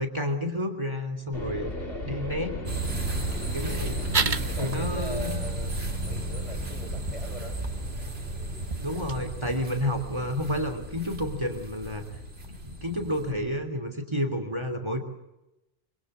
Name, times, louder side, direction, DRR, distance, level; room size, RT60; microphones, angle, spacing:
voice 1, 0.0-1.7 2.0-2.6 3.5-4.0 4.6-5.3 8.8-12.0 12.6-15.0, left 1 dB, 25° right, 6 dB, 3.2 m, -30 dB
sound 1, 1.3-13.7, left 2 dB, 70° left, 2.5 m, -39 dB
voice 2, 1.4-2.4 4.4-7.6 12.4-12.5, left 1 dB, 35° left, 4 dB, 5.1 m, -42 dB
sound 2, 2.7-13.3, right 2 dB, 85° right, 3.3 m, -35 dB
sound 3, 4.1-9.1, right 4 dB, 50° right, 1.3 m, -34 dB
25.5 x 25.0 x 7.8 m, 0.95 s
omnidirectional pair, 1.0 m